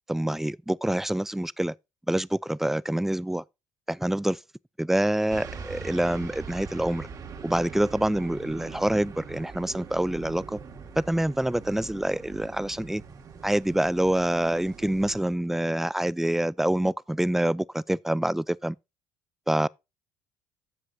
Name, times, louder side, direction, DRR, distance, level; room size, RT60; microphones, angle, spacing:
voice 1, 0.1-1.7 2.1-3.4 3.9-4.4 4.8-7.1 7.4-10.6 11.0-13.0 13.4-18.8 19.5-19.7, right 1 dB, 5° right, 0.5 m, -26 dB
sound 1, 5.3-15.2, right 5 dB, 45° right, 2.0 m, -42 dB
12.0 x 7.7 x 2.7 m
supercardioid pair, 70°, 8 cm